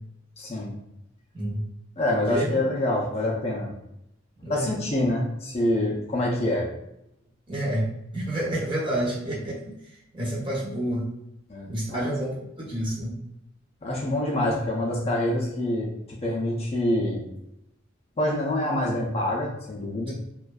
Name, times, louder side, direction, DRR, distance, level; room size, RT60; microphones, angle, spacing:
voice 1, 0.4-0.7 2.0-3.7 4.5-6.7 11.5-12.1 13.8-17.2 18.2-20.1, left 1 dB, 30° left, -3 dB, 0.4 m, -26 dB
voice 2, 1.3-1.6 2.3-2.6 4.4-4.8 7.5-7.9 8.1-9.6 10.1-11.0 11.7-13.1 20.1-20.2, right 1 dB, 25° right, -6 dB, 0.7 m, -29 dB
2.5 x 2.2 x 2.2 m, 0.83 s
head